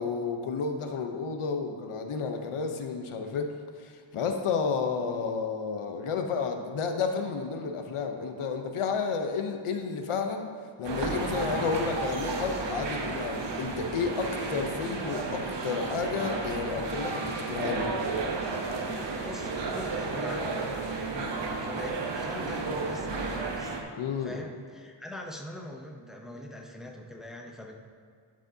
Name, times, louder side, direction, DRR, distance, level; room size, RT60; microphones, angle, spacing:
voice 1, 0.0-3.5 3.8-17.9 24.0-24.4, left 5 dB, 85° left, 5 dB, 0.8 m, -31 dB
sound 1, 10.8-23.8, right 3 dB, 60° right, 0.9 m, -32 dB
voice 2, 19.0-23.8 24.2-27.8, left 1 dB, ahead, 1 dB, 0.7 m, -42 dB
11.5 x 6.4 x 2.7 m, 2.1 s
wide cardioid pair, 135°, 50 cm